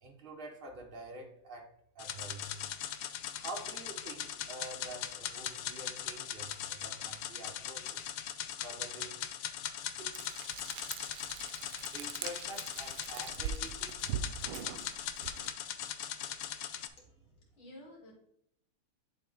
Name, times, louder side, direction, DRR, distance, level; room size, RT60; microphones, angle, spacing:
voice 1, 0.0-2.6 3.4-8.1 8.6-9.2 10.0-10.2 11.9-14.2, right 2 dB, 70° right, 1 dB, 0.5 m, -47 dB
sound 1, 2.0-16.9, left 10 dB, 80° left, 0.9 m, -40 dB
Frying (food), 10.1-15.5, right 8 dB, 85° right, 1.4 m, -42 dB
voice 2, 17.0-18.1, left 1 dB, 60° left, -2 dB, 2.7 m, -54 dB
10.5 x 3.6 x 3.8 m, 0.75 s
omnidirectional pair, 2.3 m